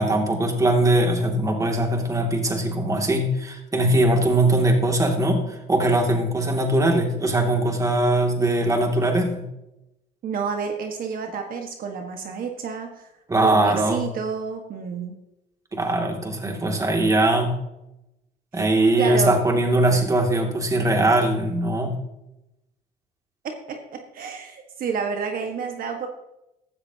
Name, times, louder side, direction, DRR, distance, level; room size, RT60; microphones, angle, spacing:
voice 1, 0.0-9.5 13.3-14.1 15.7-17.5 18.5-21.9, right 1 dB, 20° right, 2 dB, 2.5 m, -21 dB
voice 2, 10.2-13.1 13.4-15.1 18.5-18.6 19.0-19.4 23.4-26.1, right 5 dB, 55° right, 4 dB, 1.6 m, -30 dB
16.0 x 13.0 x 2.9 m, 0.90 s
cardioid pair, 110°, 17 cm